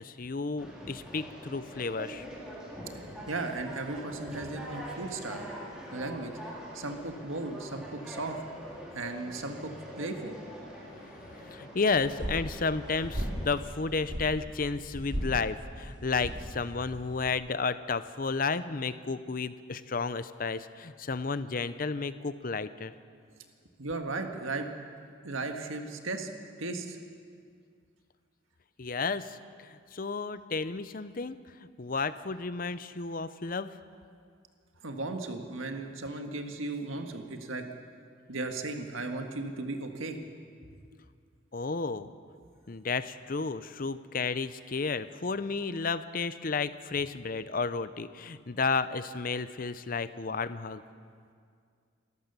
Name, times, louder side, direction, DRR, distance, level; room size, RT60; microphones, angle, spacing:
voice 1, 0.0-2.2 11.0-22.9 28.8-31.4 31.8-33.8 41.5-42.1 42.7-50.8, left 4 dB, 45° left, 14 dB, 0.6 m, -32 dB
Conversation, 0.6-13.6, equal, 5° right, 4.4 m, -44 dB
voice 2, 2.9-5.5 5.9-6.3 6.7-8.4 8.9-9.7 10.0-10.3 23.8-24.7 25.2-26.3 26.6-27.0 34.8-37.6 38.3-40.2, right 2 dB, 85° right, 4 dB, 1.8 m, -36 dB
sound 1, 11.9-17.3, equal, 65° right, 2.6 m, -38 dB
27.5 x 14.0 x 6.9 m, 2.2 s
head